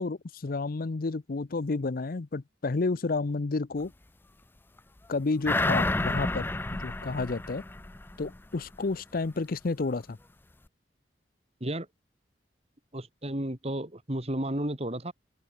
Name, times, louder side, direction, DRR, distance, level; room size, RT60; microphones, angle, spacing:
voice 1, 0.0-3.9 5.1-7.6 8.2-10.2, left 3 dB, 55° left, 0.6 m, -31 dB
sound 1, 5.4-8.4 8.7-8.8, left 2 dB, 10° left, 0.4 m, -30 dB
voice 2, 12.9-15.1, right 1 dB, 35° right, 3.5 m, -32 dB
head